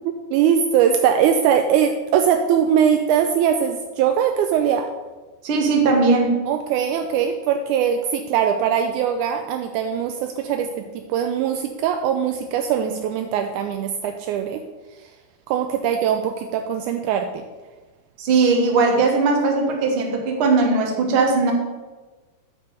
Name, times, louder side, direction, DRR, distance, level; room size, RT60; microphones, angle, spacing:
voice 1, 0.3-4.9 6.5-14.6 15.0-15.1 15.5-17.5, right 8 dB, 80° right, 6 dB, 1.9 m, -21 dB
voice 2, 5.4-6.4 18.2-21.5, right 3 dB, 55° right, 1 dB, 1.8 m, -19 dB
8.3 x 4.6 x 6.8 m, 1.2 s
omnidirectional pair, 3.7 m